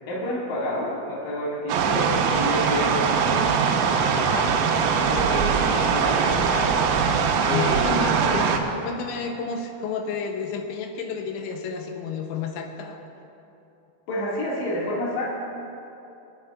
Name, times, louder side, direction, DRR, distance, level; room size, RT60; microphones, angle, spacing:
voice 1, 0.1-3.1 3.9-4.8 5.1-6.8 7.4-8.0 14.1-15.3, left 1 dB, 50° left, -5 dB, 2.7 m, -29 dB
sound 1, 1.7-8.6, right 6 dB, 90° right, 3.4 m, -22 dB
voice 2, 7.5-13.0, left 5 dB, 80° left, 3 dB, 2.8 m, -31 dB
25.5 x 8.8 x 2.4 m, 2.8 s
omnidirectional pair, 5.8 m